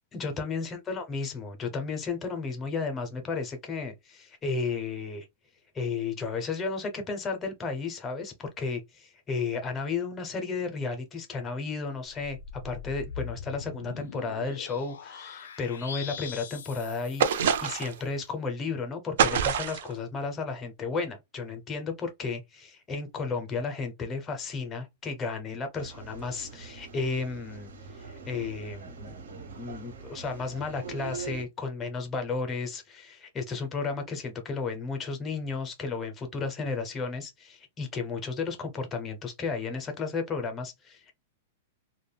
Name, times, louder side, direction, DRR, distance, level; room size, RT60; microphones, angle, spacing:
voice 1, 0.1-5.3 5.7-12.4 12.6-27.7 28.0-41.1, left 4 dB, 10° left, 0.5 m, -33 dB
sound 1, 12.1-17.9, left 7 dB, 90° left, 0.4 m, -42 dB
sound 2, 17.2-18.0 19.2-19.9, right 7 dB, 55° right, 0.3 m, -25 dB
sound 3, 25.7-31.4, right 5 dB, 90° right, 0.8 m, -43 dB
2.2 x 2.1 x 3.2 m
supercardioid pair, 180°, 0 cm